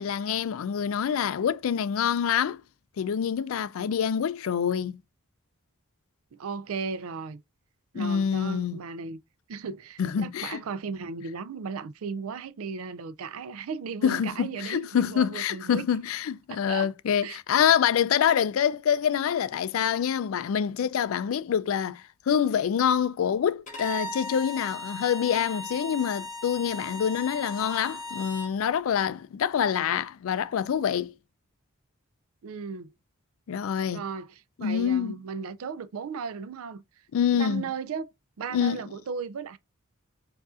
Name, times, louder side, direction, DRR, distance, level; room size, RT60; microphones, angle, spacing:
voice 1, 0.0-2.6 3.0-5.0 7.9-8.8 10.0-10.6 14.0-31.1 33.5-34.0 34.6-35.1 37.1-37.7 38.5-38.8, left 8 dB, 70° left, 0.4 m, -26 dB
voice 2, 6.3-7.4 7.9-9.2 9.5-15.8 16.5-16.9 17.2-17.6 32.4-32.9 33.9-36.8 37.3-38.1 38.4-39.6, right 5 dB, 80° right, 0.4 m, -36 dB
Bowed string instrument, 23.7-28.5, left 1 dB, 35° left, 1.2 m, -37 dB
4.7 x 2.5 x 2.4 m
head